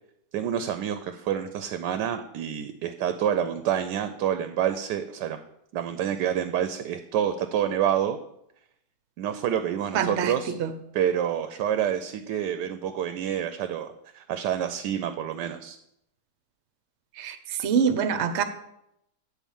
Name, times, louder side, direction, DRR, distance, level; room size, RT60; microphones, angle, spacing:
voice 1, 0.3-5.4 5.7-8.2 9.2-10.5 10.9-15.8, right 9 dB, 85° right, 10 dB, 1.2 m, -28 dB
voice 2, 9.9-10.3 10.6-10.7 17.2-18.4, right 7 dB, 55° right, 9 dB, 0.9 m, -25 dB
9.2 x 4.1 x 7.1 m, 0.79 s
omnidirectional pair, 1.8 m